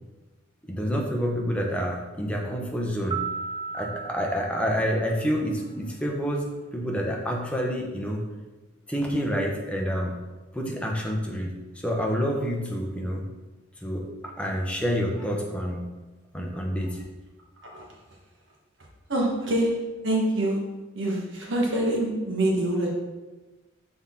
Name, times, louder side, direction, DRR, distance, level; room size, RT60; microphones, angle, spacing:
voice 1, 0.7-3.2 3.7-8.2 8.9-10.1 10.5-13.3 13.8-15.8 16.3-17.0, equal, 5° left, -1 dB, 0.7 m, -28 dB
sound 1, 3.1-5.6, right 5 dB, 25° right, 0.4 m, -35 dB
voice 2, 19.1-19.7 20.0-20.6 20.9-22.9, right 1 dB, 60° right, -2 dB, 1.3 m, -25 dB
6.2 x 4.2 x 3.7 m, 1.2 s
head